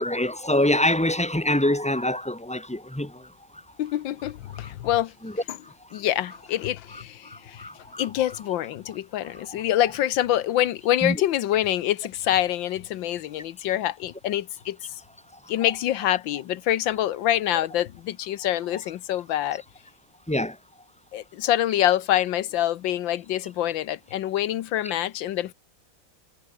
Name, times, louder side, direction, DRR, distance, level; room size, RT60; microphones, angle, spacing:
voice 1, 0.0-3.3 5.2-5.3 7.2-8.0 11.0-11.2 20.3-20.6, left 1 dB, 5° left, 1.3 m, -25 dB
voice 2, 3.8-5.1 5.5-5.6 5.9-7.7 8.0-14.8 15.5-19.6 21.1-25.5, left 12 dB, 85° left, 1.6 m, -26 dB
omnidirectional pair, 2.0 m